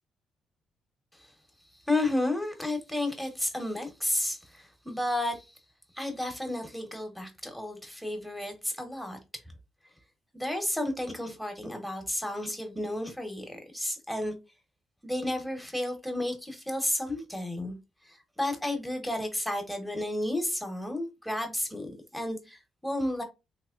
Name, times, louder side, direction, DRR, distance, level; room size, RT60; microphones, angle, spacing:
voice 1, 1.7-5.6 5.9-9.2 10.3-14.3 15.0-17.8 18.0-23.2, left 1 dB, ahead, 1.2 m, -32 dB
3.5 x 3.0 x 2.5 m
cardioid pair, 90°, 0 cm